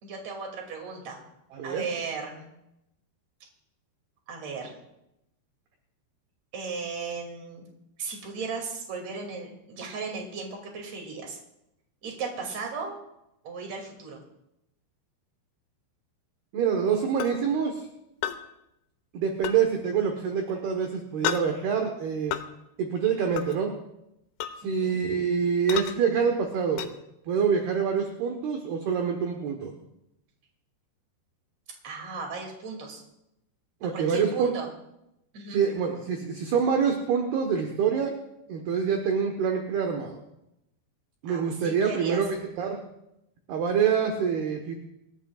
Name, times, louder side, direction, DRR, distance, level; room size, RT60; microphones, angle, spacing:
voice 1, 0.0-1.2 1.6-2.4 4.3-4.8 6.5-7.6 8.0-11.4 12.0-12.9 13.4-14.2 24.6-25.0 31.8-33.0 33.9-34.7 35.3-35.6 41.3-42.2, right 4 dB, 40° right, 1 dB, 3.2 m, -36 dB
voice 2, 1.5-1.9 16.5-17.9 19.1-22.4 22.8-23.7 24.6-26.9 27.3-29.7 33.8-34.5 35.5-38.2 38.5-40.2 41.2-42.8 43.5-44.8, right 6 dB, 65° right, 3 dB, 2.9 m, -26 dB
sound 1, 17.2-17.3 18.2-18.4 19.4-19.6 21.2-21.5 22.3-22.4 23.4-23.6 24.4-24.6 25.7-25.9 26.8-26.9, left 11 dB, 80° left, 3.2 m, -30 dB
26.5 x 14.5 x 2.4 m, 0.85 s
omnidirectional pair, 5.5 m